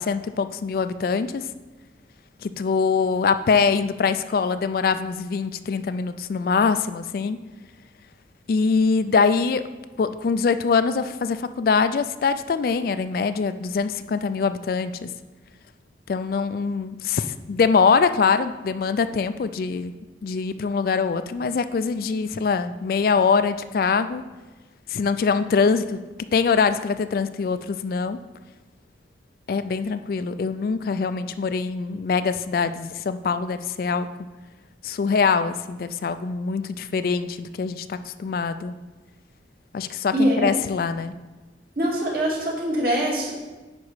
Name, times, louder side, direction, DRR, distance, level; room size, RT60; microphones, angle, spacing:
voice 1, 0.0-1.4 2.4-7.4 8.5-9.6 10.0-15.1 16.1-19.9 20.2-24.2 24.9-26.0 26.3-28.2 29.5-34.1 34.8-38.7 39.7-41.1, left 5 dB, 55° left, 11 dB, 0.3 m, -23 dB
voice 2, 40.1-40.6 41.8-43.3, equal, 55° right, -3 dB, 2.1 m, -23 dB
9.6 x 4.1 x 4.8 m, 1.2 s
head